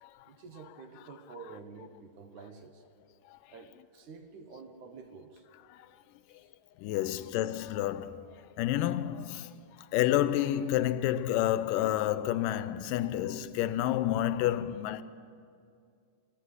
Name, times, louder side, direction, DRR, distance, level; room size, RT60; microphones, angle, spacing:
voice 1, 0.3-2.8 3.5-5.4 7.0-7.2, right 5 dB, 70° right, 2.5 m, -49 dB
voice 2, 6.8-8.2 8.6-9.5 9.9-15.0, left 13 dB, 85° left, 2.3 m, -29 dB
25.5 x 13.5 x 9.7 m
omnidirectional pair, 3.8 m